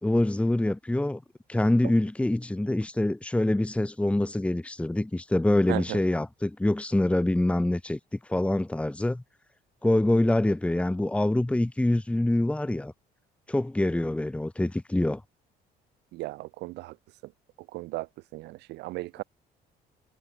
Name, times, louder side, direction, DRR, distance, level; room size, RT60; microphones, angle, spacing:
voice 1, 0.0-1.2 1.5-8.0 8.3-9.2 9.8-12.9 13.5-15.2, left 1 dB, 5° left, 1.8 m, -25 dB
voice 2, 5.7-6.0 16.1-16.9 17.7-18.1 18.3-19.2, right 20 dB, 90° right, 2.7 m, -35 dB
cardioid pair, 110°, 17 cm